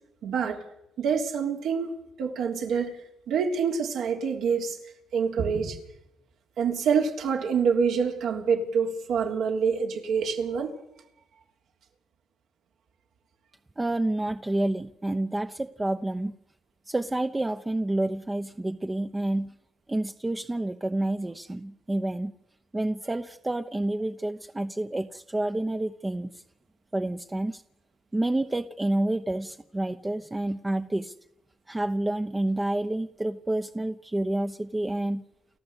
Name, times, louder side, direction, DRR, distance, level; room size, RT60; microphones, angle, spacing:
voice 1, 0.2-0.6 1.0-1.9 2.2-3.0 3.3-4.8 5.1-5.8 6.6-10.8, right 6 dB, 80° right, 3.5 m, -26 dB
voice 2, 13.8-16.3 16.9-19.5 19.9-22.3 22.7-26.4 26.9-27.6 28.1-31.1 31.7-35.2, right 1 dB, 15° right, 0.9 m, -29 dB
29.5 x 14.5 x 8.2 m
cardioid pair, 90°, 0 cm